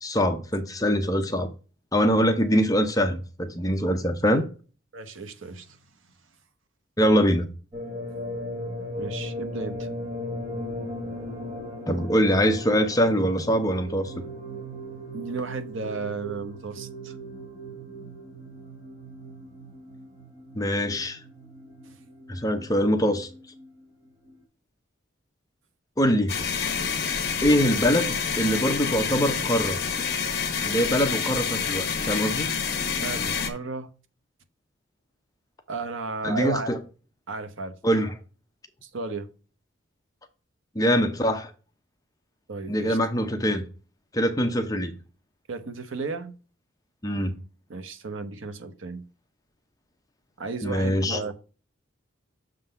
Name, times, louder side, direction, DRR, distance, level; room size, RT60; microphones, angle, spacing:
voice 1, 0.0-1.5 1.9-4.5 7.0-7.5 11.9-14.1 20.5-21.2 22.3-23.3 26.0-26.3 27.4-29.8 30.6-32.5 36.2-36.8 37.8-38.1 40.7-41.5 42.7-43.7 44.1-44.9 47.0-47.4 50.6-51.2, equal, 15° left, 0.7 m, -23 dB
voice 2, 4.9-5.8 8.9-9.9 15.1-17.1 33.0-33.9 35.7-36.7 37.3-37.7 38.8-39.3 42.5-43.0 45.5-46.3 47.7-49.0 50.4-51.3, right 4 dB, 75° right, 0.9 m, -34 dB
sound 1, 7.7-23.8 24.3-24.4, equal, 25° right, 2.1 m, -38 dB
sound 2, 26.3-33.5, left 6 dB, 50° left, 1.1 m, -28 dB
6.6 x 3.8 x 5.5 m
head